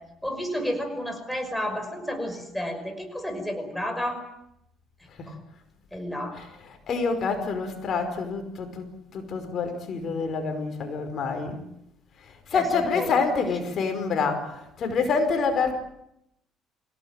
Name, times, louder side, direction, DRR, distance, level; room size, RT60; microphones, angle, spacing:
voice 1, 0.2-4.2 5.3-5.4 5.9-6.4 12.5-12.7 12.9-13.1, equal, 5° left, 6 dB, 5.8 m, -31 dB
voice 2, 6.3-11.6 12.5-15.8, left 4 dB, 50° left, 7 dB, 5.1 m, -27 dB
27.5 x 17.5 x 9.2 m, 0.80 s
cardioid pair, 105°, 0 cm